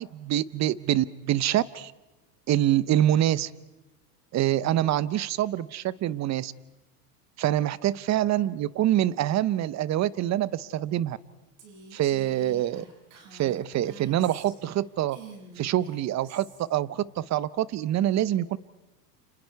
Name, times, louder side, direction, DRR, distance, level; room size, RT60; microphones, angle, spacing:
voice 1, 0.0-1.9 2.5-3.5 4.3-6.5 7.4-11.2 11.9-12.8 13.3-15.2 15.6-18.6, right 12 dB, 35° right, 19 dB, 0.8 m, -25 dB
Female speech woman speaking, 11.6-14.8 15.1-16.6, right 5 dB, 60° right, 6.8 m, -48 dB
30.0 x 27.0 x 4.6 m, 1.1 s
hypercardioid pair, 100°, 48 cm